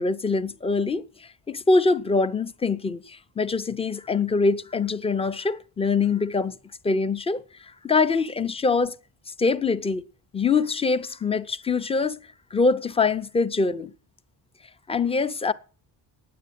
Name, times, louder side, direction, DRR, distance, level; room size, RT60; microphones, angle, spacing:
voice 1, 0.0-6.5 6.8-9.0 9.4-10.0 10.3-12.2 12.5-13.9 14.9-15.5, left 4 dB, 15° left, 0.5 m, -24 dB
9.4 x 8.3 x 8.6 m
cardioid pair, 160°, 41 cm